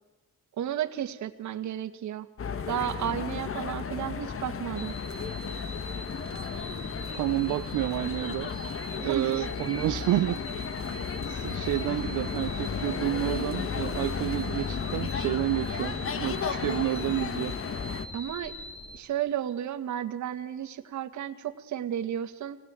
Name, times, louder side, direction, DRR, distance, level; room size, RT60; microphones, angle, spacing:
voice 1, 0.6-2.3 2.7-4.9 9.0-9.4 18.1-18.5 18.9-22.6, right 10 dB, 70° right, 9 dB, 1.8 m, -33 dB
sound 1, 2.4-18.1, left 6 dB, 45° left, 2.0 m, -34 dB
sound 2, 4.8-19.0, equal, 20° left, 7.2 m, -43 dB
voice 2, 7.1-8.5 9.0-10.5 10.8-17.6, right 17 dB, 85° right, 11 dB, 0.7 m, -30 dB
26.5 x 17.5 x 9.1 m, 1.3 s
cardioid pair, 90°, 30 cm